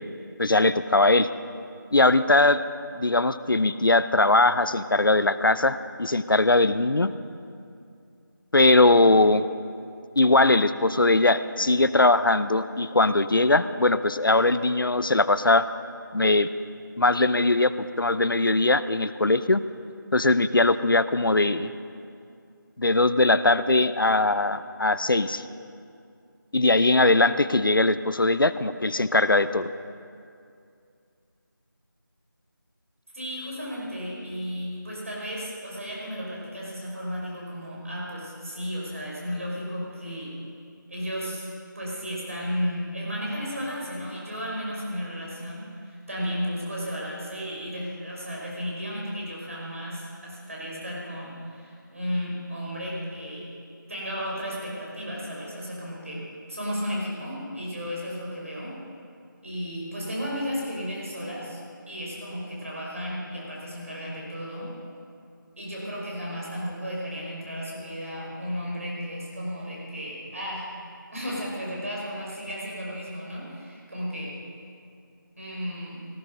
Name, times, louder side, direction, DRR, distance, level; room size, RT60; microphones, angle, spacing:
voice 1, 0.4-1.3 1.9-2.6 2.9-7.1 8.5-9.5 10.2-15.6 16.1-16.5 17.0-19.6 20.1-21.7 22.8-25.4 26.5-29.7, left 2 dB, 80° left, 13 dB, 0.8 m, -20 dB
voice 2, 33.1-40.4 40.9-41.5 41.7-53.5 53.9-58.8 59.4-61.6 61.9-64.7 65.6-70.7 71.1-74.4 75.4-76.0, equal, 40° right, -4 dB, 5.4 m, -34 dB
18.5 x 14.5 x 5.3 m, 2.4 s
figure-of-eight pair, 180°, 11 cm